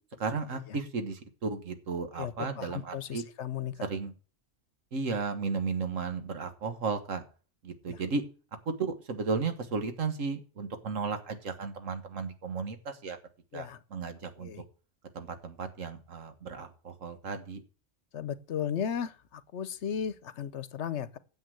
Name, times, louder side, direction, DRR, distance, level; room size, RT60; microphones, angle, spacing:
voice 1, 0.2-3.2 3.8-4.1 4.9-7.2 7.6-8.2 8.7-13.2 13.5-14.5 15.2-17.6, right 4 dB, 90° right, 1.8 m, -34 dB
voice 2, 2.2-3.8 7.9-8.0 13.5-13.8 14.4-14.6 18.1-21.2, left 8 dB, 65° left, 1.0 m, -35 dB
9.4 x 7.4 x 7.8 m
omnidirectional pair, 1.3 m